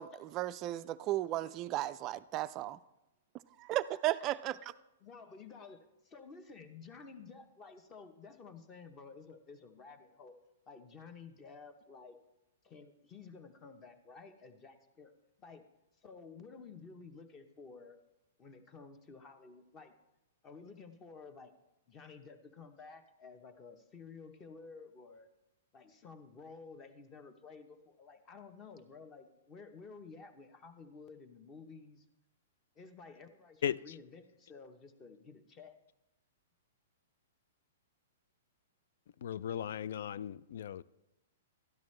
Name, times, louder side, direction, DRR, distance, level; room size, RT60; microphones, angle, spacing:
voice 1, 0.0-2.8 3.6-4.6, right 15 dB, 25° right, 0.3 m, -35 dB
voice 2, 5.0-10.4 10.7-12.2 12.6-15.1 15.4-15.6 16.0-18.0 18.4-20.0 20.4-21.5 21.9-25.3 25.7-32.1 32.7-35.8, left 4 dB, 20° left, 0.8 m, -52 dB
voice 3, 39.2-40.8, left 9 dB, 65° left, 0.3 m, -36 dB
13.0 x 10.5 x 3.2 m
hypercardioid pair, 160°, 0 cm